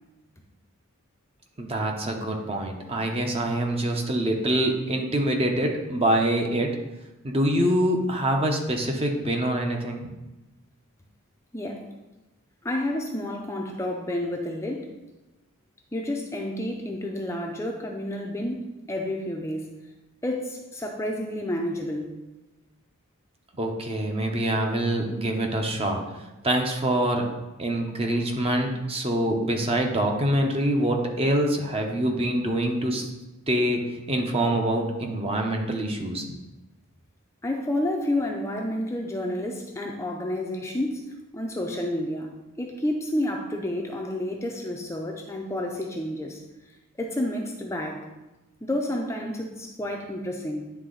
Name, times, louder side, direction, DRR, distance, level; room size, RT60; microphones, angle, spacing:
voice 1, 1.6-6.7 7.2-10.0 23.6-26.0 26.4-27.3 27.6-33.1 33.5-36.2, right 1 dB, 25° right, 2 dB, 0.7 m, -25 dB
voice 2, 11.5-11.9 12.6-14.9 15.9-19.7 20.2-22.2 37.4-46.4 47.0-48.1 48.6-50.7, left 1 dB, 15° left, 1 dB, 0.5 m, -30 dB
9.5 x 3.6 x 3.8 m, 1.0 s
head